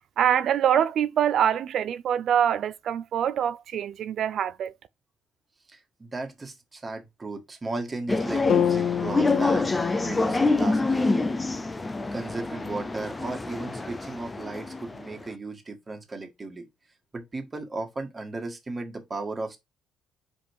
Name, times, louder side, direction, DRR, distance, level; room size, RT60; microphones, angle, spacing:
voice 1, 0.0-4.7, right 9 dB, 45° right, 0.4 m, -24 dB
voice 2, 5.7-9.6 10.0-11.1 12.1-16.7 17.1-19.6, right 3 dB, 15° right, 1.7 m, -35 dB
sound 1, 8.1-15.2, left 3 dB, 10° left, 0.6 m, -26 dB
sound 2, 8.5-12.6, left 9 dB, 60° left, 0.4 m, -30 dB
5.2 x 5.2 x 4.7 m
cardioid pair, 160°, 0 cm